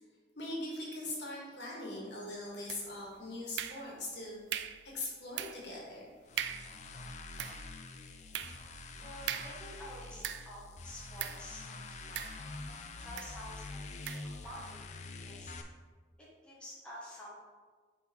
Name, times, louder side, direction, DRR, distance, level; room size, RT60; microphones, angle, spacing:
voice 1, 0.3-4.4 4.9-6.0, left 2 dB, 70° left, -4 dB, 1.6 m, -41 dB
sound 1, 2.7-3.1 3.6-4.1 4.5-4.9 5.4-5.7 6.0-6.1 6.4-6.8 7.2-10.7 11.2-11.5 12.2-12.7 13.2-13.4 14.1-14.3, right 10 dB, 70° right, 0.3 m, -40 dB
sound 2, 6.2-15.6, left 3 dB, 40° left, 0.4 m, -46 dB
voice 2, 9.0-11.7 12.0-12.1 13.0-13.9 14.4-15.6 16.2-17.3, equal, 5° left, -7 dB, 1.1 m, -49 dB
6.1 x 3.7 x 4.4 m, 1.5 s
head